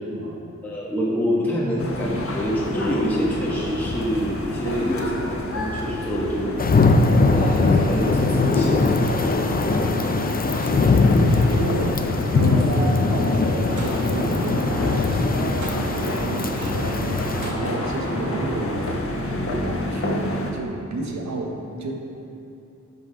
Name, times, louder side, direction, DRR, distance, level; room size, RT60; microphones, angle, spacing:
voice 1, 0.0-0.4 10.0-10.2 10.5-21.9, right 2 dB, 70° right, 1 dB, 1.3 m, -32 dB
voice 2, 0.6-6.8 7.3-9.9, equal, 5° left, -6 dB, 1.3 m, -26 dB
sound 1, 1.8-20.5, left 1 dB, 50° left, 1.2 m, -30 dB
sound 2, 6.6-17.5, left 3 dB, 30° left, 0.5 m, -21 dB
sound 3, 6.9-18.7, right 1 dB, 85° right, 1.9 m, -33 dB
11.0 x 5.6 x 5.1 m, 2.7 s
wide cardioid pair, 105°, 30 cm